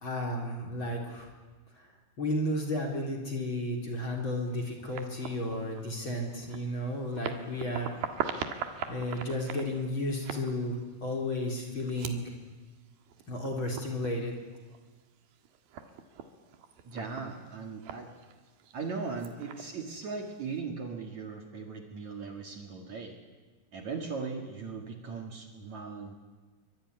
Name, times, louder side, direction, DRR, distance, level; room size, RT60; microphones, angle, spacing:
voice 1, 0.0-1.3 2.2-7.9 8.9-12.2 13.3-14.3, left 1 dB, 30° left, 1 dB, 4.3 m, -33 dB
sound 1, 4.5-20.6, right 8 dB, 70° right, 3.4 m, -43 dB
voice 2, 16.8-18.1 18.7-23.2 23.7-26.1, right 4 dB, 50° right, 3 dB, 3.1 m, -38 dB
24.5 x 24.0 x 10.0 m, 1.3 s
omnidirectional pair, 4.6 m